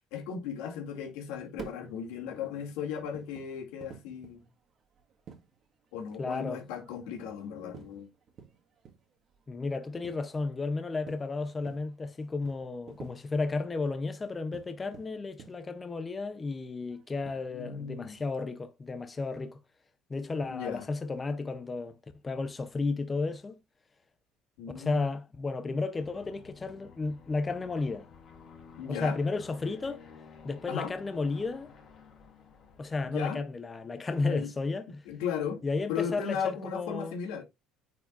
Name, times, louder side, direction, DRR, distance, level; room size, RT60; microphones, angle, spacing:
voice 1, 0.1-4.5 5.9-8.1 17.5-18.2 20.5-20.9 24.6-25.0 28.8-29.2 30.7-30.9 33.1-33.4 34.2-34.5 35.1-35.6 35.9-37.4, left 7 dB, 90° left, 2.4 m, -36 dB
sound 1, 1.5-17.6, right 6 dB, 40° right, 1.5 m, -52 dB
voice 2, 6.2-6.6 9.5-19.6 20.1-22.0 22.2-23.6 24.7-28.1 28.9-30.0 30.4-31.7 32.8-35.0 35.6-36.4 36.7-37.1, left 3 dB, 20° left, 0.6 m, -33 dB
Aircraft, 26.0-33.3, left 5 dB, 45° left, 2.9 m, -53 dB
9.3 x 4.7 x 2.5 m
cardioid pair, 140°, 0 cm